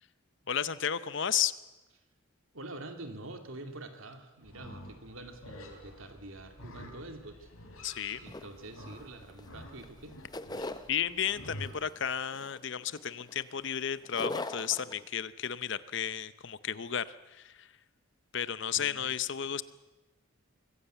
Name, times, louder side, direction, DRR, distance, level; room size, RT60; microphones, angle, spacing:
voice 1, 0.5-1.5 7.8-8.2 10.9-17.7 18.3-19.6, left 9 dB, 55° left, 15 dB, 0.7 m, -33 dB
voice 2, 2.5-7.5 8.2-10.2 18.8-19.1, right 2 dB, 70° right, 5 dB, 2.7 m, -46 dB
Livestock farm animals working animals, 4.4-11.7, left 1 dB, 85° left, 4.1 m, -49 dB
sound 1, 8.3-9.5 9.8-10.9 11.4-11.8 12.3-13.7 14.0-15.0, left 2 dB, 20° left, 0.7 m, -39 dB
24.0 x 15.5 x 8.1 m, 1.1 s
head